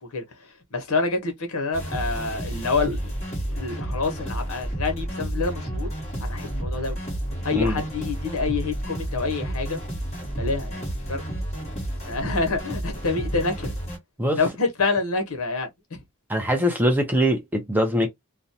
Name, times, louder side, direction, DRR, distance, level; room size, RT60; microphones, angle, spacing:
voice 1, 0.0-3.1 3.4-5.9 6.2-7.0 7.4-9.8 10.3-11.2 12.0-13.7 14.4-16.0, left 4 dB, 70° left, 1.0 m, -27 dB
sound 1, 1.7-14.0, right 1 dB, 30° left, 1.3 m, -31 dB
voice 2, 16.3-18.1, equal, 10° right, 0.4 m, -22 dB
2.5 x 2.1 x 2.7 m
head